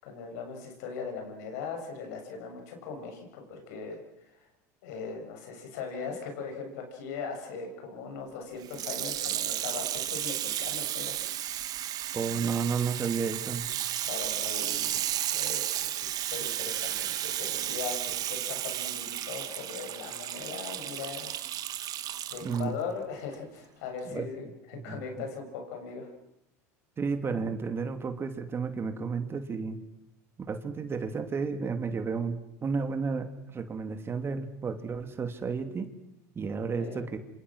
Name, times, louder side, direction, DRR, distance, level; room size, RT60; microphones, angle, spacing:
voice 1, 0.0-4.0 4.8-11.2 14.0-21.4 21.7-21.8 22.3-26.1 36.8-37.1, left 5 dB, 75° left, 4 dB, 7.1 m, -39 dB
Water tap faucet / Sink (filling or washing), 8.6-22.6 23.3-23.4, right 12 dB, 45° right, 1.6 m, -33 dB
voice 2, 12.1-13.7 22.4-22.8 24.1-24.3 24.7-25.0 27.0-29.8 30.4-35.9 36.3-37.1, right 5 dB, 25° right, 8 dB, 2.7 m, -32 dB
27.0 x 26.5 x 6.3 m, 0.83 s
supercardioid pair, 100°, 9 cm